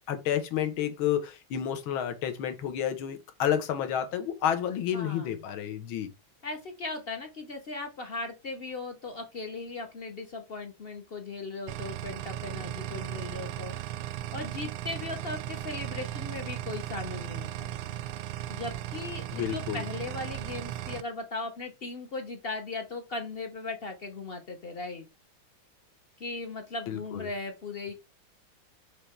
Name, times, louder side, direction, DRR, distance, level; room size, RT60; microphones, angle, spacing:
voice 1, 0.1-6.1 19.3-19.8 26.9-27.3, left 9 dB, 75° left, 1.8 m, -30 dB
voice 2, 4.9-5.4 6.4-13.7 14.3-17.7 18.5-25.1 26.2-27.9, left 3 dB, 45° left, 0.7 m, -38 dB
sound 1, 11.7-21.0, right 12 dB, 85° right, 1.5 m, -37 dB
6.8 x 3.3 x 4.4 m
omnidirectional pair, 2.3 m